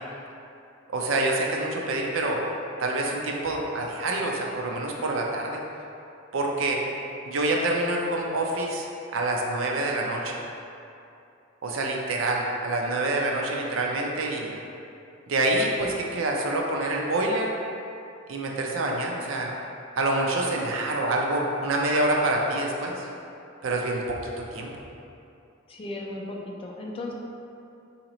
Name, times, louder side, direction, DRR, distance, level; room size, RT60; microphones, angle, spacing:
voice 1, 0.9-2.4 2.8-5.6 6.3-6.8 7.3-8.9 9.1-10.4 11.6-14.5 15.3-17.5 18.3-19.5 20.0-23.1 23.6-24.2 24.5-24.7, right 2 dB, 70° right, 0 dB, 0.5 m, -26 dB
voice 2, 25.7-27.1, left 2 dB, 25° left, -1 dB, 0.4 m, -35 dB
2.9 x 2.8 x 4.0 m, 2.7 s
head